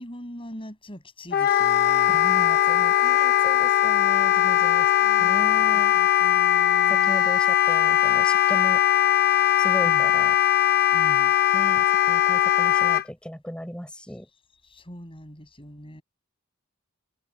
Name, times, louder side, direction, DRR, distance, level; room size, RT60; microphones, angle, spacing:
voice 1, 0.0-2.2 5.0-5.4 5.9-7.1 9.8-10.1 10.9-11.3 14.7-16.0, equal, 25° left, 7.8 m, -41 dB
Wind instrument woodwind instrument, 1.3-13.0, left 11 dB, 45° left, 1.2 m, -20 dB
voice 2, 2.1-4.9 5.2-5.9 6.9-8.8 9.6-10.4 11.5-14.3, equal, 5° left, 5.7 m, -37 dB
head